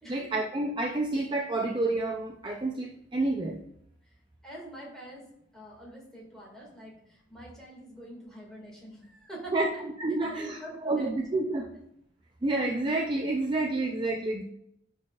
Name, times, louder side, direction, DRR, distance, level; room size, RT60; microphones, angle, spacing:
voice 1, 0.1-3.6 9.5-9.7 10.0-11.7 12.4-14.4, right 2 dB, 25° right, 1 dB, 0.4 m, -29 dB
voice 2, 4.4-5.3 5.5-9.5 10.2-11.2, right 1 dB, 5° left, -4 dB, 1.9 m, -45 dB
10.0 x 4.1 x 2.4 m, 0.72 s
head